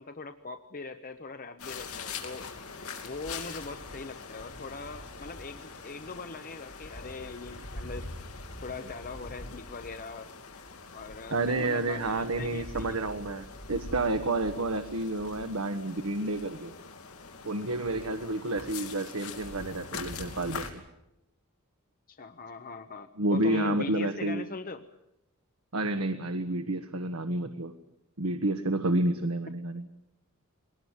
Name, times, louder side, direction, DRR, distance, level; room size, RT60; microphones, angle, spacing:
voice 1, 0.0-2.5 3.0-8.1 8.6-10.3 10.9-13.0 22.1-24.8, left 3 dB, 40° left, 8 dB, 0.9 m, -41 dB
sound 1, 1.6-20.7, left 4 dB, 85° left, 2.9 m, -43 dB
voice 2, 11.3-16.7 17.4-20.7 23.2-24.4 25.7-27.7 28.2-29.9, right 2 dB, 75° right, 7 dB, 1.3 m, -30 dB
22.0 x 19.0 x 9.6 m, 0.90 s
head